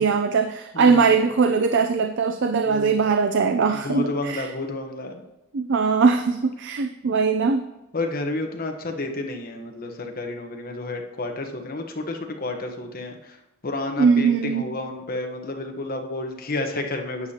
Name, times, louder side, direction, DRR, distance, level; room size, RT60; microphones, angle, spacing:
voice 1, 0.0-4.5 5.5-7.7 14.0-14.6, right 5 dB, 55° right, 7 dB, 0.5 m, -21 dB
voice 2, 0.7-1.2 2.6-3.0 3.6-5.2 7.9-13.4 13.6-17.3, left 2 dB, 45° left, 3 dB, 1.1 m, -31 dB
11.5 x 8.8 x 2.9 m, 0.99 s
head